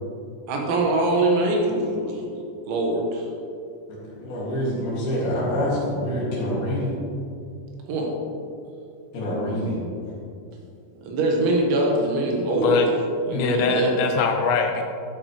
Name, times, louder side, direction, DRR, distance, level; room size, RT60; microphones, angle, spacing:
voice 1, 0.5-2.3 2.7-3.2 7.9-8.1 11.0-12.8 13.3-13.9, right 2 dB, 80° right, -1 dB, 3.7 m, -23 dB
voice 2, 4.2-6.9 9.1-9.8, equal, 55° left, -6 dB, 3.8 m, -26 dB
voice 3, 12.6-12.9 13.3-14.8, left 4 dB, 80° left, 5 dB, 2.8 m, -22 dB
13.0 x 8.7 x 3.2 m, 2.5 s
omnidirectional pair, 5.3 m